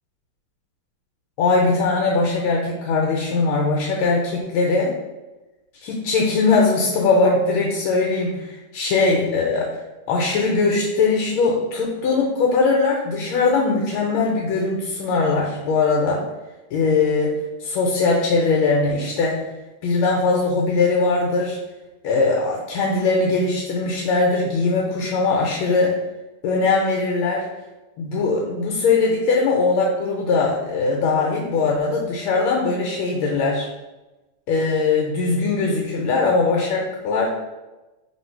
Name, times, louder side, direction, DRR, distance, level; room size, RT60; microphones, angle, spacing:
voice 1, 1.4-4.9 5.8-9.8 10.1-16.2 16.7-19.5 19.8-21.6 22.0-25.9 26.4-27.4 28.0-33.7 34.5-37.3, left 3 dB, 80° left, -2 dB, 1.4 m, -20 dB
3.1 x 3.0 x 4.3 m, 1.1 s
omnidirectional pair, 2.3 m